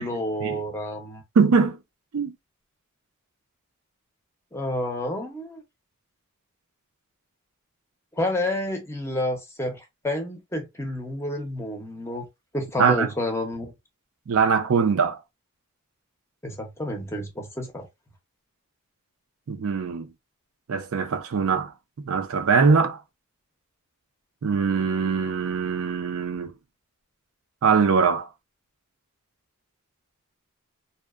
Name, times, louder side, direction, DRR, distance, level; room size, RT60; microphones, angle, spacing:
voice 1, 0.0-1.2 4.5-5.6 8.2-12.2 12.5-13.7 16.4-17.8, left 1 dB, 15° left, 0.6 m, -29 dB
voice 2, 1.4-1.8 2.1-2.3 12.8-13.1 14.3-15.2 19.5-20.1 20.7-21.7 22.0-23.0 24.4-26.5 27.6-28.3, right 5 dB, 70° right, 0.4 m, -22 dB
2.6 x 2.0 x 2.3 m
head